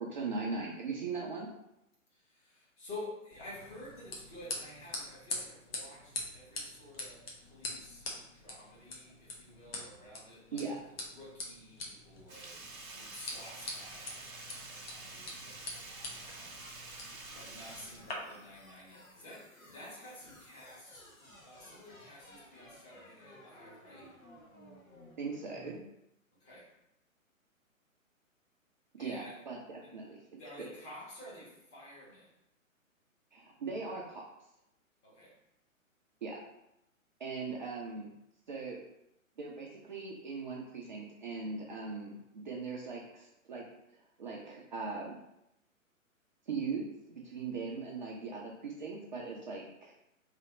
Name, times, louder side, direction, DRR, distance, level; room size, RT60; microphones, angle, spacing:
voice 1, 0.1-1.5 10.5-10.8 25.2-25.8 29.0-30.7 33.3-34.2 36.2-36.4 37.2-38.1 38.5-38.8 39.4-43.6 44.2-45.2 46.5-49.9, right 4 dB, 35° right, -3 dB, 0.5 m, -39 dB
voice 2, 2.1-10.7 11.1-15.6 16.1-16.7 17.3-21.1 21.4-24.2 26.4-26.7 29.0-29.4 29.8-30.0 30.4-32.3 35.0-35.4, left 1 dB, 20° left, -6 dB, 1.2 m, -51 dB
sound 1, 3.3-18.1, left 2 dB, 45° left, 1.0 m, -45 dB
Sink (filling or washing), 12.3-18.8 19.1-19.2, right 3 dB, 80° right, 1.0 m, -48 dB
sound 2, 15.7-25.8, equal, 75° left, 1.2 m, -57 dB
3.3 x 2.8 x 4.0 m, 0.83 s
figure-of-eight pair, 125°, 41 cm